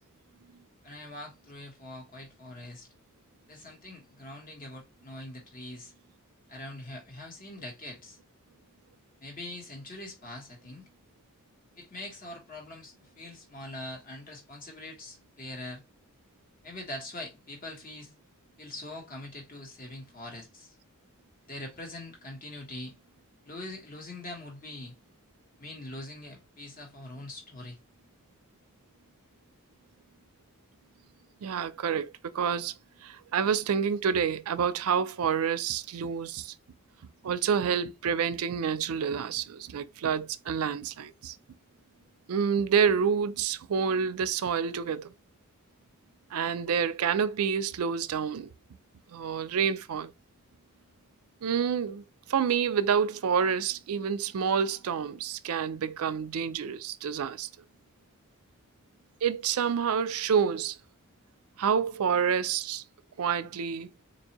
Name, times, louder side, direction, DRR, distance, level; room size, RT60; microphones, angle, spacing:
voice 1, 0.8-2.9 3.5-5.9 6.5-8.2 9.2-10.9 11.7-15.8 16.6-18.2 18.6-20.8 21.5-23.0 23.4-25.0 25.6-27.8, left 1 dB, 40° left, 1.4 m, -43 dB
voice 2, 31.4-32.7 33.0-36.5 37.2-41.3 42.3-45.1 46.3-48.5 49.1-50.1 51.4-52.0 52.3-57.5 59.2-60.8 61.6-62.8 63.2-63.9, right 7 dB, 90° right, 0.4 m, -28 dB
4.1 x 2.6 x 2.8 m
head